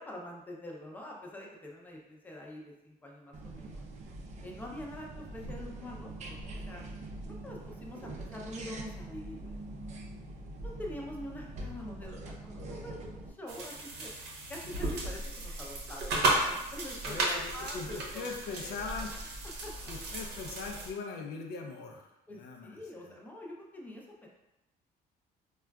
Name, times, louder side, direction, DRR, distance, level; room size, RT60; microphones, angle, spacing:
voice 1, 0.0-3.8 4.4-6.8 7.3-9.6 10.6-14.1 14.5-19.1 19.6-19.9 22.3-24.3, left 1 dB, 10° left, -2 dB, 0.5 m, -45 dB
sound 1, 3.3-13.3, right 1 dB, 45° right, 0.4 m, -43 dB
sound 2, 13.5-20.9, right 2 dB, 80° right, 0.7 m, -34 dB
voice 2, 17.1-19.1 19.9-23.2, left 4 dB, 75° left, 2 dB, 0.5 m, -41 dB
3.6 x 2.2 x 2.2 m, 0.92 s
cardioid pair, 110°, 17 cm